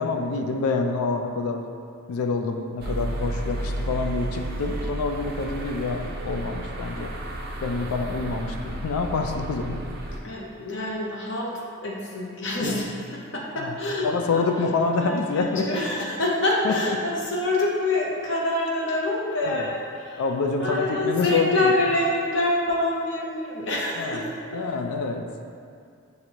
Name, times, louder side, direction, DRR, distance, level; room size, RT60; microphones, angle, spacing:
voice 1, 0.0-1.7 2.1-7.1 7.6-9.9 12.6-12.8 13.6-13.7 14.0-15.8 16.6-17.0 19.4-19.7 20.2-21.7 24.0-24.2 24.5-25.3, left 4 dB, 90° left, 5 dB, 0.4 m, -27 dB
sound 1, 2.8-10.2, right 1 dB, 45° right, 0.4 m, -32 dB
voice 2, 10.0-11.5 11.8-14.5 15.0-20.2 20.6-24.7, left 2 dB, 55° left, -3 dB, 0.7 m, -26 dB
5.8 x 2.6 x 2.9 m, 2.4 s
head